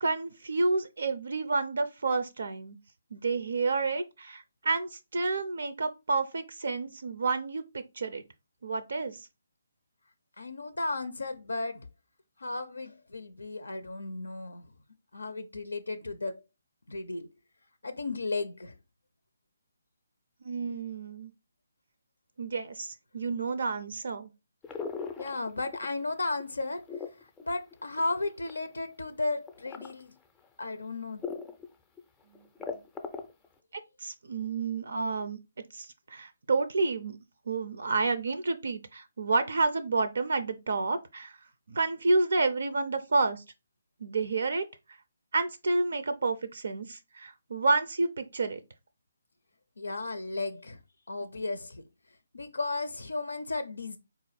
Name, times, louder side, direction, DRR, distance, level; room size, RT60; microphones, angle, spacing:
voice 1, 0.0-2.8 3.1-8.2 8.6-9.2 20.4-21.3 22.4-24.3 32.7-32.8 34.0-35.4 35.7-37.2 37.5-41.4 41.7-43.4 44.0-45.0 45.3-48.6, right 3 dB, 60° right, 0.4 m, -30 dB
voice 2, 10.4-11.9 12.4-14.7 15.1-16.4 16.9-17.3 17.8-18.7 25.2-26.9 27.4-30.1 30.6-31.2 49.8-50.8 51.1-51.8 52.3-54.0, left 3 dB, 75° left, 0.5 m, -34 dB
sound 1, 24.6-26.0 26.4-28.7 29.5-29.9 30.4-30.5 31.2-31.6 32.0-32.1 32.3-33.5, left 5 dB, 10° left, 0.5 m, -38 dB
4.1 x 2.5 x 3.9 m
figure-of-eight pair, 145°, 0 cm